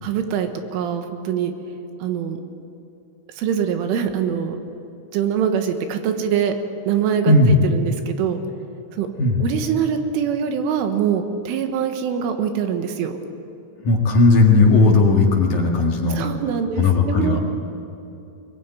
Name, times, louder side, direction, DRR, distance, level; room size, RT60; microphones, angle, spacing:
voice 1, 0.0-1.5 2.0-2.4 3.4-4.6 5.1-6.5 6.9-8.4 9.0-9.1 9.4-13.1 16.1-17.4, right 8 dB, 80° right, 6 dB, 3.8 m, -23 dB
voice 2, 7.3-7.6 9.2-9.4 13.8-16.2 16.8-17.4, left 3 dB, 50° left, 0 dB, 2.6 m, -16 dB
22.5 x 20.0 x 9.2 m, 2.8 s
omnidirectional pair, 5.7 m